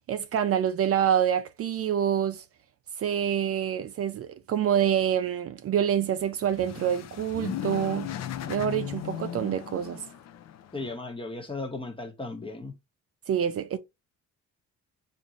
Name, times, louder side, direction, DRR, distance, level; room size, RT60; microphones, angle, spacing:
voice 1, 0.1-2.4 3.0-8.1 8.5-10.0 13.3-13.8, right 9 dB, 50° right, 0.4 m, -26 dB
sound 1, 6.2-11.0, left 10 dB, 60° left, 0.5 m, -37 dB
voice 2, 10.7-12.7, left 3 dB, 15° left, 1.0 m, -36 dB
3.7 x 2.6 x 2.8 m
cardioid pair, 90°, 30 cm